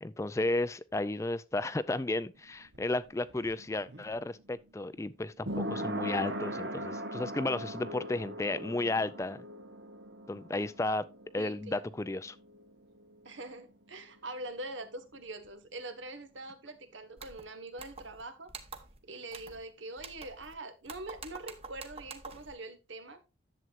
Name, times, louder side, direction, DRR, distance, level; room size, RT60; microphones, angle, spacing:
voice 1, 0.0-9.4 10.3-11.1 11.3-12.4, left 2 dB, 15° left, 0.3 m, -33 dB
sound 1, 2.4-13.9 14.2-14.3, right 1 dB, 70° right, 1.1 m, -41 dB
voice 2, 11.4-11.9 13.3-18.5 19.0-23.2, right 2 dB, 90° right, 1.7 m, -44 dB
sound 2, 17.2-17.4 17.8-18.2 18.5-19.0 19.3-19.6 20.0-20.5 20.9-22.5, right 4 dB, 30° right, 1.0 m, -47 dB
10.5 x 7.7 x 2.6 m
head